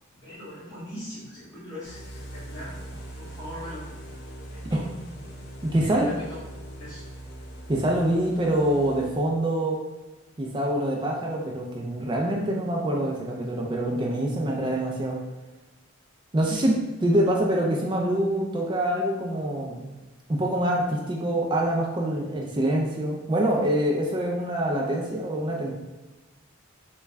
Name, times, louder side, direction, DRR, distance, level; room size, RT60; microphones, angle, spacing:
voice 1, 0.1-2.8 3.2-3.8 4.5-4.8 5.6-6.4 6.8-7.0 16.5-16.6, left 1 dB, 15° left, -14 dB, 1.4 m, -41 dB
sound 1, 1.8-9.5, right 1 dB, 55° left, 0.5 m, -41 dB
voice 2, 5.6-6.1 7.7-9.8 10.4-15.2 16.3-16.7 17.0-19.9 20.3-25.7, right 1 dB, 20° right, -1 dB, 0.3 m, -25 dB
3.4 x 2.3 x 3.1 m, 1.1 s
head